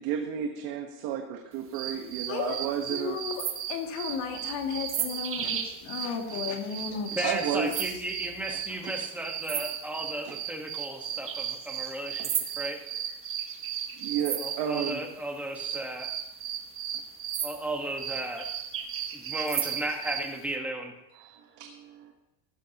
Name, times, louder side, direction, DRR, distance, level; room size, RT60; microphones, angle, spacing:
voice 1, 0.0-3.2 6.9-7.9 8.5-8.6 8.8-9.0 9.6-9.7 10.2-10.4 12.2-12.3 14.0-15.0 21.1-22.1, right 8 dB, 55° right, 3 dB, 1.3 m, -33 dB
sound 1, 1.7-15.0 15.5-20.3, right 9 dB, 30° right, 1.0 m, -35 dB
voice 2, 2.9-7.3, left 6 dB, 65° left, 2 dB, 2.4 m, -34 dB
voice 3, 7.2-12.3 12.5-12.8 14.4-16.1 17.4-18.5 19.1-20.9, right 1 dB, 5° right, 2 dB, 1.3 m, -34 dB
15.5 x 13.0 x 2.9 m, 0.96 s
cardioid pair, 155°, 45 cm